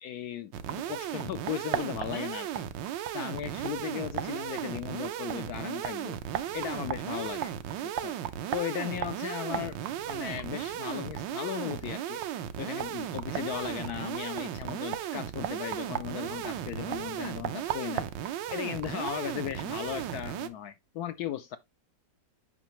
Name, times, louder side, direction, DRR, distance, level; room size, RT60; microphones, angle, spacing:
voice 1, 0.0-2.6 3.1-6.2 6.5-7.5 7.8-8.2 8.5-9.8 10.1-12.2 12.6-18.1 18.5-21.6, left 11 dB, 70° left, 0.9 m, -37 dB
sound 1, 0.5-20.5, right 10 dB, 80° right, 1.4 m, -35 dB
8.3 x 5.4 x 2.9 m
omnidirectional pair, 2.0 m